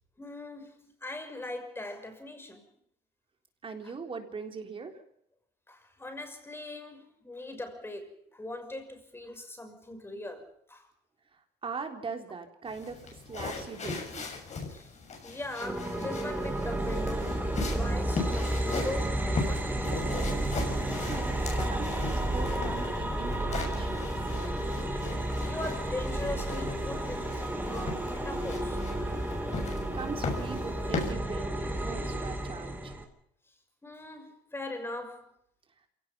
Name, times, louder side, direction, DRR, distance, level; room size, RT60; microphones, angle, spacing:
voice 1, 0.2-2.7 3.8-3.9 5.7-10.9 14.7-15.0 15.2-19.8 20.7-20.9 25.4-29.3 33.8-35.3, left 2 dB, 15° left, 6.0 m, -40 dB
voice 2, 3.6-5.0 11.3-14.3 20.8-24.3 29.9-32.9, right 4 dB, 30° right, 3.8 m, -41 dB
sound 1, 12.7-31.1, left 4 dB, 40° left, 6.7 m, -39 dB
sound 2, 15.6-33.0, right 1 dB, 10° right, 4.1 m, -32 dB
28.0 x 17.5 x 5.6 m
cardioid pair, 110°, 17 cm